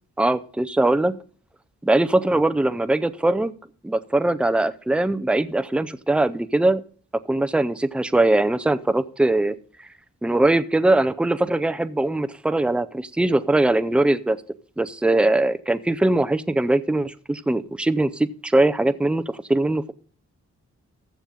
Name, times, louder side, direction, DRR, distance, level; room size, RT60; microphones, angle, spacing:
voice 1, 0.2-1.2 1.8-3.5 3.8-6.8 7.3-9.5 10.2-14.4 14.8-19.9, right 2 dB, 5° right, 14 dB, 0.5 m, -21 dB
14.5 x 7.1 x 3.8 m, 0.43 s
wide cardioid pair, 115°, 30 cm